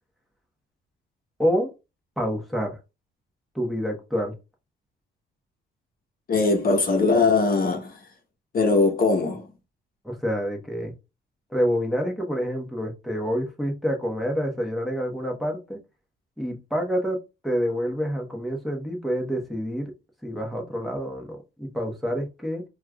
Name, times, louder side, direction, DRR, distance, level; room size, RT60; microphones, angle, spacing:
voice 1, 1.4-1.7 2.2-2.8 3.5-4.3 10.0-10.9 11.5-15.8 16.4-19.9 20.2-22.6, equal, ahead, 1.1 m, -27 dB
voice 2, 6.3-7.9 8.5-9.5, left 3 dB, 45° left, 0.9 m, -21 dB
4.4 x 2.4 x 2.3 m
cardioid pair, 90°, 20 cm